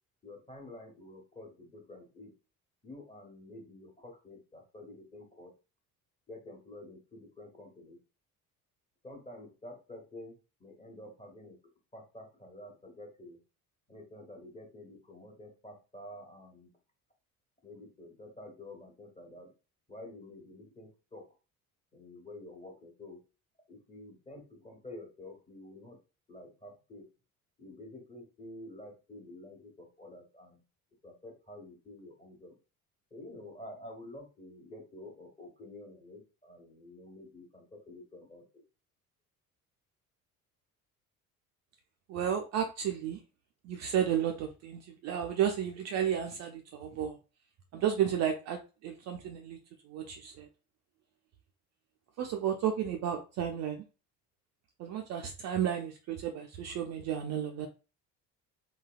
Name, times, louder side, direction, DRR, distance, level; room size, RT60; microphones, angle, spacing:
voice 1, 0.2-2.3 2.8-5.5 6.3-8.0 9.0-10.3 10.6-11.6 11.9-13.4 13.9-16.7 17.6-19.5 19.9-21.2 21.9-23.2 23.7-26.0 26.3-27.1 27.6-30.6 31.0-32.5 33.1-38.6, left 1 dB, 15° left, 1 dB, 1.3 m, -49 dB
voice 2, 42.1-43.2 43.6-47.2 47.7-49.6 49.8-50.5 52.2-53.8 54.8-57.7, right 9 dB, 40° right, 4 dB, 0.5 m, -32 dB
3.9 x 2.2 x 2.4 m, 0.32 s
figure-of-eight pair, 55°, 44 cm